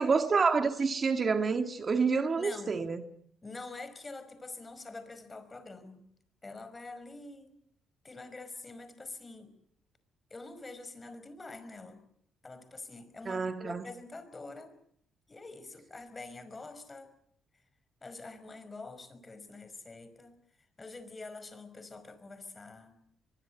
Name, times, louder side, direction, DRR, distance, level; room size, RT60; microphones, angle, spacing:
voice 1, 0.0-3.0 13.3-13.8, right 5 dB, 40° right, 1.8 m, -28 dB
voice 2, 2.4-2.9 3.4-6.1 6.4-7.5 8.0-9.5 10.3-12.0 12.4-14.7 15.3-17.1 18.0-20.3 20.8-23.0, left 3 dB, 25° left, 5.2 m, -46 dB
23.5 x 21.5 x 8.8 m
cardioid pair, 90°, 0 cm